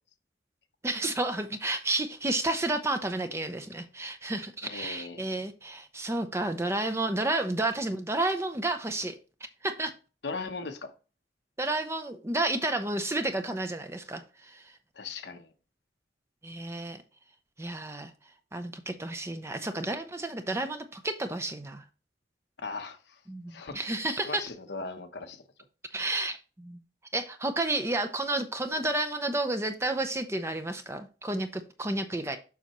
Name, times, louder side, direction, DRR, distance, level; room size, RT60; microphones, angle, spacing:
voice 1, 0.8-9.1 9.6-9.9 11.6-14.7 16.4-17.0 17.6-18.1 18.5-21.8 23.3-24.4 25.9-26.8 27.1-32.4, right 2 dB, 15° right, 0.6 m, -31 dB
voice 2, 4.6-5.4 10.2-10.9 14.9-15.5 22.6-23.2 23.5-23.8 24.2-25.4, left 4 dB, 65° left, 0.9 m, -38 dB
7.2 x 5.6 x 3.0 m
head